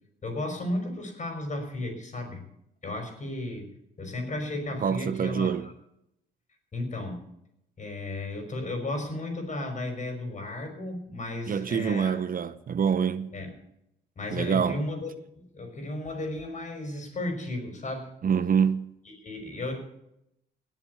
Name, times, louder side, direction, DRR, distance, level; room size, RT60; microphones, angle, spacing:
voice 1, 0.2-2.4 2.8-5.7 6.7-7.3 7.8-12.1 13.3-13.5 14.2-18.1 19.1-19.9, left 2 dB, 40° left, 5.5 m, -34 dB
voice 2, 4.8-5.7 11.5-13.4 14.3-14.8 18.2-18.9, right 7 dB, 45° right, 0.8 m, -26 dB
18.5 x 7.5 x 6.8 m
cardioid pair, 90°, 20 cm